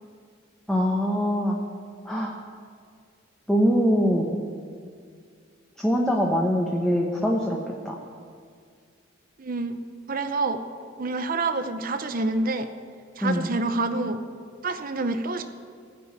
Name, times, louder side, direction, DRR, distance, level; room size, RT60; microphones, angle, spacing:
voice 1, 0.7-1.6 2.0-2.3 3.5-4.4 5.8-7.6 7.8-8.0 13.2-13.5, equal, 5° left, -2 dB, 0.9 m, -23 dB
voice 2, 9.4-9.8 10.1-10.6 11.0-12.7 13.2-14.2 14.6-15.4, right 3 dB, 45° right, 9 dB, 0.6 m, -27 dB
15.5 x 5.4 x 9.4 m, 2.1 s
head